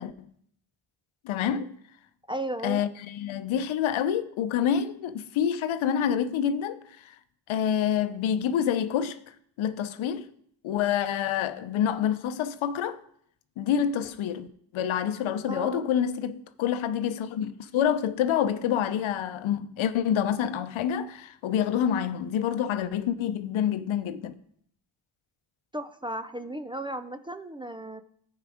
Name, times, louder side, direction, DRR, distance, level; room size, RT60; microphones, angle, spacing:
voice 1, 1.2-1.7 2.6-6.8 7.5-9.2 9.6-10.3 10.6-13.0 13.6-14.5 14.7-24.4, left 9 dB, 90° left, 0.7 m, -27 dB
voice 2, 2.3-2.8 15.4-15.9 25.7-28.0, right 1 dB, 10° right, 0.3 m, -35 dB
14.0 x 4.8 x 4.9 m
cardioid pair, 90°, 46 cm